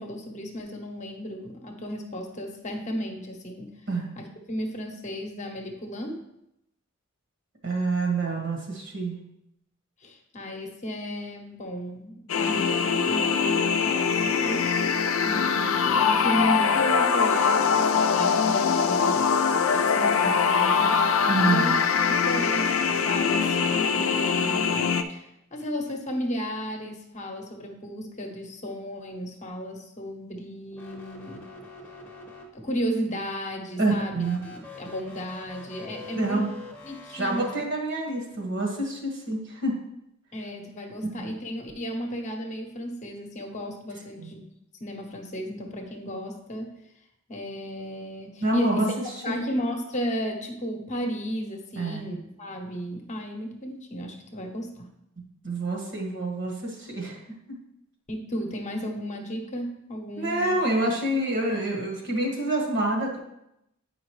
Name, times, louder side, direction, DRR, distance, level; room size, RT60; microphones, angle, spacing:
voice 1, 0.0-3.7 4.2-6.2 10.0-14.7 15.2-19.3 19.7-21.1 21.3-31.5 32.5-36.5 36.8-37.5 40.3-44.5 44.8-46.7 47.3-48.9 49.2-54.9 58.1-60.6, equal, 35° left, 3 dB, 0.9 m, -34 dB
voice 2, 7.6-9.2 21.3-21.8 33.8-34.4 36.1-36.5 37.1-39.8 41.2-41.3 44.2-44.3 48.4-49.4 51.7-52.1 55.4-57.2 57.5-57.6 60.2-63.2, right 2 dB, 60° right, 1 dB, 1.5 m, -27 dB
sound 1, 12.3-25.0, left 6 dB, 70° left, 0.5 m, -23 dB
sound 2, 30.7-32.9 34.1-37.6, left 3 dB, 10° left, 0.9 m, -44 dB
8.7 x 5.1 x 3.1 m, 0.82 s
head